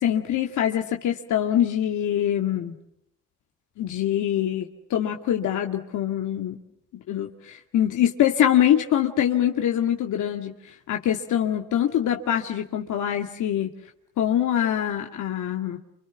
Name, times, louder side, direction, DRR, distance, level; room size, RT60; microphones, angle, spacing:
voice 1, 0.0-2.7 3.8-6.6 7.1-10.5 10.9-13.7 14.2-15.8, left 10 dB, 80° left, 3 dB, 2.3 m, -24 dB
29.5 x 28.0 x 6.0 m, 0.75 s
cardioid pair, 90°, 30 cm